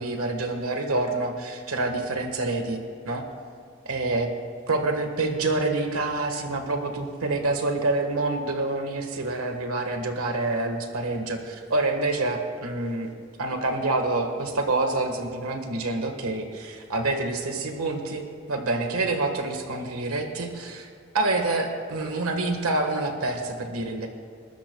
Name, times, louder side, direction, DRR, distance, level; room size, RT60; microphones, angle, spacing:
voice 1, 0.0-2.8 3.0-3.2 3.8-4.3 4.7-13.1 13.4-18.2 18.5-20.9 21.1-24.1, right 2 dB, 90° right, 4 dB, 1.5 m, -27 dB
29.0 x 13.0 x 2.3 m, 2.3 s
head